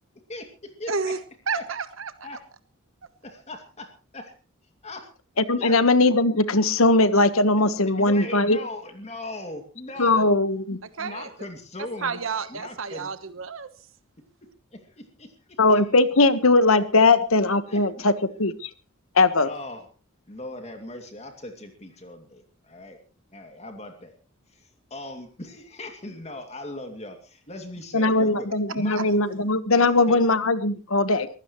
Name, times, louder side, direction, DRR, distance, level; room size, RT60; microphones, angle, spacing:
voice 1, 0.3-0.9 1.5-1.6 2.2-2.4 3.2-4.3 4.8-5.1 5.6-5.8 8.0-10.3 10.7-12.2 12.5-13.1 14.7-15.8 17.7-18.1 19.4-19.9 20.3-23.0 23.3-24.1 24.5-28.5 28.7-29.0 29.8-30.2, left 2 dB, 30° left, 4 dB, 2.5 m, -39 dB
voice 2, 0.9-1.2 1.5-2.1 10.1-10.2 11.0-11.3 12.0-13.7 28.9-29.5, right 5 dB, 70° right, 10 dB, 1.2 m, -31 dB
voice 3, 5.4-8.6 10.0-10.8 15.6-18.1 18.4-18.7 19.1-19.5 27.9-31.3, left 2 dB, 80° left, 12 dB, 1.4 m, -20 dB
23.0 x 16.0 x 3.1 m, 0.35 s
head